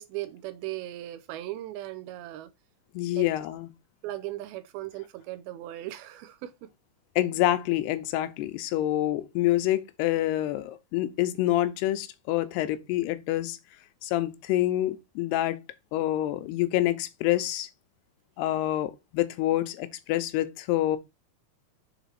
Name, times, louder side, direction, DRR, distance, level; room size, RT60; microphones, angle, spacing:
voice 1, 0.0-2.5 3.1-3.5 4.0-6.5, right 15 dB, 85° right, 2.4 m, -38 dB
voice 2, 2.9-3.7 7.2-13.6 14.0-15.6 15.9-17.7 18.4-21.0, left 14 dB, 90° left, 2.8 m, -27 dB
7.1 x 3.9 x 4.1 m
omnidirectional pair, 4.6 m